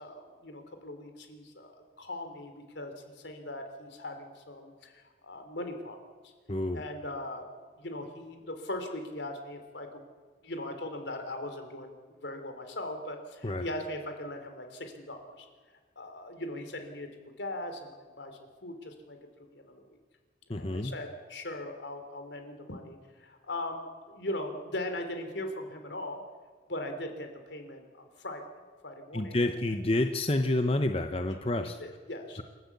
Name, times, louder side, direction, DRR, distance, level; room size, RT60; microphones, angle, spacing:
voice 1, 0.0-1.7 2.0-6.0 6.2-6.3 6.7-7.5 7.8-10.0 10.4-15.5 15.9-17.1 17.4-18.3 18.6-20.0 20.5-26.2 26.7-28.4 28.8-29.5 31.3-32.4, left 1 dB, 75° left, 6 dB, 3.2 m, -40 dB
voice 2, 6.5-6.8 13.4-13.6 20.5-20.9 29.1-31.8, left 1 dB, 30° left, 6 dB, 0.9 m, -29 dB
28.0 x 12.5 x 8.2 m, 1.5 s
head